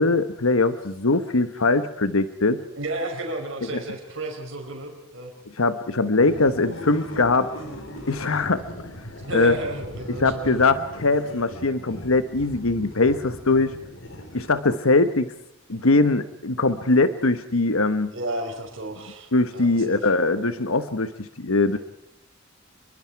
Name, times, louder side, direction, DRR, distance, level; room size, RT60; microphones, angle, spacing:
voice 1, 0.0-2.6 5.6-7.5 8.1-8.9 9.3-9.5 10.2-13.7 14.3-15.3 15.7-18.1 19.3-21.8, left 3 dB, 90° left, 11 dB, 1.2 m, -21 dB
voice 2, 2.8-5.3 9.2-10.6 18.1-20.1 21.7-21.8, right 1 dB, 65° right, 2 dB, 5.0 m, -32 dB
sound 1, 6.2-14.8, left 1 dB, 70° left, 4.1 m, -39 dB
28.5 x 23.5 x 4.7 m, 0.81 s
head